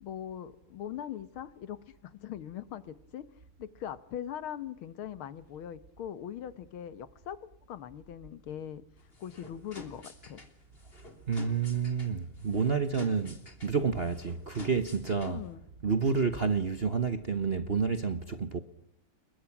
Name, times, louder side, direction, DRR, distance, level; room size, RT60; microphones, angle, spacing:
voice 1, 0.0-3.3 3.6-8.9 9.2-10.4 15.2-15.6, left 10 dB, 70° left, 1.9 m, -41 dB
sound 1, 9.0-15.5, left 3 dB, 25° left, 3.4 m, -50 dB
voice 2, 11.3-15.4 15.8-18.6, right 5 dB, 40° right, 0.9 m, -29 dB
30.0 x 22.0 x 6.0 m
omnidirectional pair, 2.4 m